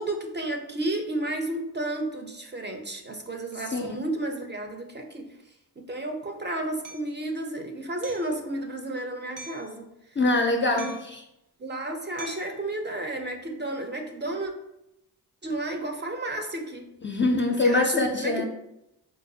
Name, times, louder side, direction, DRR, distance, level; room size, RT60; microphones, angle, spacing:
voice 1, 0.0-5.4 5.8-10.2 10.7-10.9 11.6-14.5 15.4-16.9 17.6-18.4, right 1 dB, 25° right, 3 dB, 0.5 m, -32 dB
Hammer, 6.8-7.1 8.0-8.3 9.4-9.7 10.8-11.2 12.2-12.6, right 3 dB, 85° right, 0.5 m, -43 dB
voice 2, 10.2-11.2 17.0-18.4, left 2 dB, 30° left, 2 dB, 0.4 m, -24 dB
3.9 x 2.1 x 2.6 m, 0.86 s
cardioid pair, 50°, 42 cm